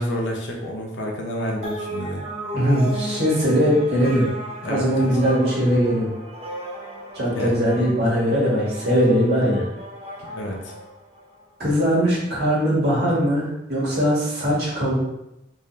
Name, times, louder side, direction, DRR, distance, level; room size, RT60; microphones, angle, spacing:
voice 1, 0.0-2.2 4.6-5.2 7.2-7.5 10.3-10.7, equal, 85° left, 0 dB, 0.7 m, -29 dB
sound 1, 1.6-11.4, right 1 dB, 35° right, 0.6 m, -36 dB
voice 2, 2.5-4.2 4.6-6.1 7.1-9.7 11.6-14.9, equal, 60° right, -7 dB, 1.5 m, -20 dB
3.7 x 2.6 x 3.1 m, 0.87 s
head